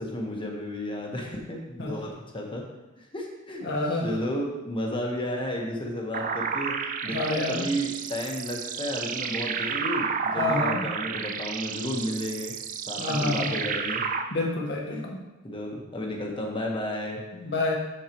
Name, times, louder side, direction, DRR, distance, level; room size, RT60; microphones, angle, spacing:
voice 1, 0.0-2.7 3.0-6.7 7.0-12.5 12.9-14.0 14.9-15.1 15.4-17.2, equal, 25° left, -1 dB, 1.3 m, -32 dB
voice 2, 3.6-4.1 7.1-7.6 10.4-10.8 13.0-13.6 14.3-15.2 17.4-17.8, left 2 dB, 55° left, -1 dB, 1.4 m, -28 dB
sound 1, 6.1-14.2, right 6 dB, 40° right, 0.5 m, -31 dB
13.0 x 4.6 x 3.0 m, 1.1 s
head